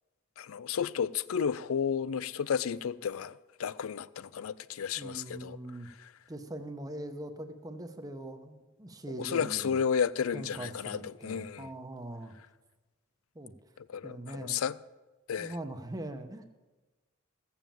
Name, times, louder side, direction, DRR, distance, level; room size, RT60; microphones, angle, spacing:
voice 1, 0.4-5.6 6.0-6.1 9.2-11.7 13.8-14.8 15.3-15.5, left 7 dB, 90° left, 0.4 m, -32 dB
voice 2, 5.0-5.9 6.3-9.8 10.3-12.3 13.3-13.5 14.0-14.6 15.4-16.5, right 1 dB, 20° right, 0.9 m, -42 dB
15.5 x 7.3 x 7.4 m
head